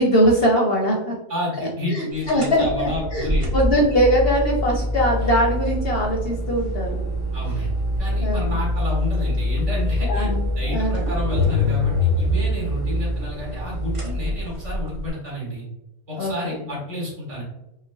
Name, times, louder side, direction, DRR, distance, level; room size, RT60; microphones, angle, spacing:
voice 1, 0.0-1.1 1.9-7.0 8.2-8.5 10.1-11.0 16.1-16.6, equal, 60° left, 0 dB, 0.7 m, -21 dB
voice 2, 1.3-3.5 7.3-10.3 10.6-15.7 16.1-17.4, left 1 dB, 65° right, -5 dB, 2.0 m, -30 dB
sound 1, 2.2-15.1, left 1 dB, 25° right, 1.0 m, -24 dB
5.6 x 2.2 x 2.2 m, 0.92 s
omnidirectional pair, 1.4 m